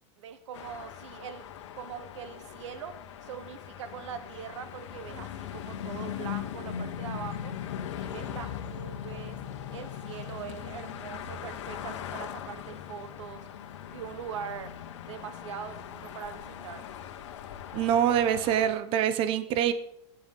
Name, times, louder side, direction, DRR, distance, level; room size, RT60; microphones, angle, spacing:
voice 1, 0.2-1.5 1.7-3.0 3.2-7.5 8.0-9.4 9.7-13.4 13.9-14.7 15.1-16.8, right 8 dB, 90° right, 10 dB, 1.3 m, -42 dB
sound 1, 0.5-18.7, left 9 dB, 80° left, 1.6 m, -40 dB
voice 2, 17.7-19.7, right 10 dB, 35° right, 12 dB, 1.1 m, -25 dB
23.5 x 9.5 x 3.9 m, 0.80 s
supercardioid pair, 155°, 15 cm